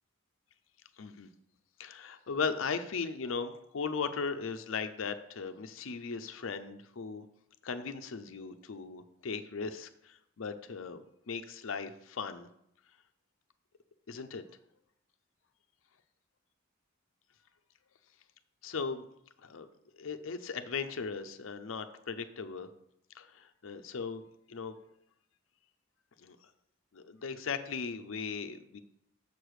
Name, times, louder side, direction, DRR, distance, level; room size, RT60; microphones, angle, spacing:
voice 1, 1.0-1.3 1.8-7.2 7.6-11.0 11.3-12.5 14.1-14.4 18.6-19.1 19.4-19.7 19.9-22.7 23.1-24.2 24.5-24.7 26.2-26.4 26.9-28.8, left 5 dB, 80° left, 8 dB, 0.6 m, -37 dB
6.7 x 4.9 x 6.3 m, 0.74 s
head